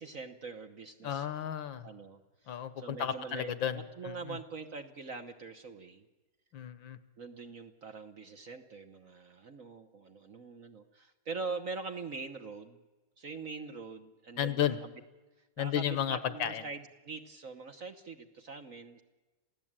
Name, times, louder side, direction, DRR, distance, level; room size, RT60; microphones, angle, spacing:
voice 1, 0.0-1.3 1.8-6.1 7.2-12.8 13.2-14.9 15.4-19.0, right 4 dB, 45° right, 8 dB, 1.3 m, -43 dB
voice 2, 1.0-1.9 2.5-4.4 6.5-7.0 14.4-14.8 15.6-16.6, left 9 dB, 65° left, 14 dB, 1.7 m, -33 dB
27.5 x 16.5 x 8.8 m, 1.2 s
omnidirectional pair, 2.3 m